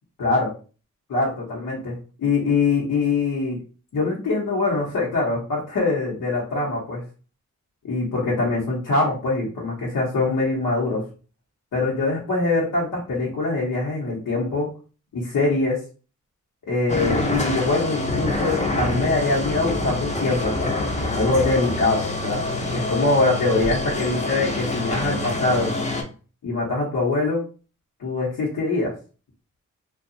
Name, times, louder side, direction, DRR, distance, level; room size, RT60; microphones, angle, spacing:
voice 1, 0.2-0.5 1.1-3.6 3.9-7.0 7.8-11.0 11.7-14.7 15.1-15.8 16.7-25.7 26.4-27.4 28.0-28.9, left 3 dB, 80° left, -6 dB, 0.9 m, -23 dB
sound 1, 16.9-26.0, left 2 dB, 20° left, 0.6 m, -26 dB
2.7 x 2.3 x 2.6 m, 0.36 s
cardioid pair, 60°, 31 cm